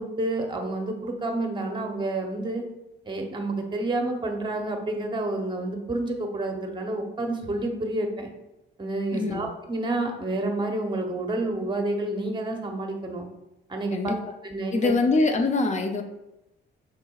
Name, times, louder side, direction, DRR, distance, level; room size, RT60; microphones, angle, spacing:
voice 1, 0.0-2.6 3.0-8.3 8.8-13.3 13.7-14.1 14.4-14.9, right 2 dB, 25° right, 4 dB, 0.9 m, -29 dB
voice 2, 9.1-9.5 13.9-14.2 14.7-16.0, left 3 dB, 35° left, 6 dB, 0.6 m, -24 dB
5.5 x 3.8 x 2.4 m, 0.94 s
cardioid pair, 90°, 20 cm